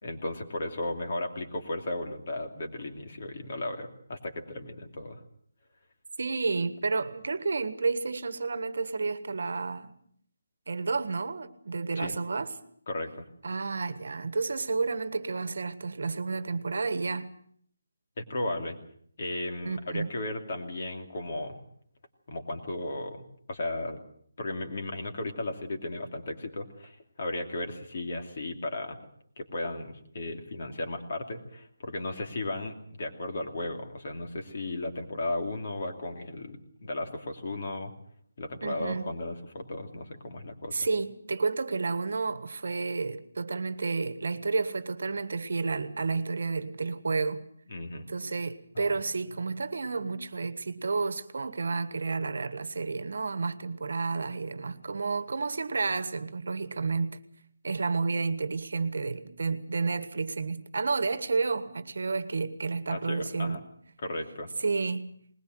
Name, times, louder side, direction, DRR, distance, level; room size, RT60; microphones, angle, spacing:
voice 1, 0.0-5.2 12.0-12.1 12.9-13.2 18.2-18.8 19.2-21.6 22.3-24.0 24.4-29.0 29.4-37.9 38.4-40.8 47.7-48.1 48.7-49.0 62.9-63.6 64.0-64.5, left 2 dB, 35° left, 2.7 m, -35 dB
voice 2, 6.2-10.0 10.7-12.5 13.4-17.3 19.6-20.1 38.6-39.1 40.7-47.4 48.1-57.2 57.6-63.6 64.6-65.2, right 4 dB, 55° right, 1.5 m, -31 dB
20.5 x 20.5 x 7.8 m
hypercardioid pair, 180°, 0 cm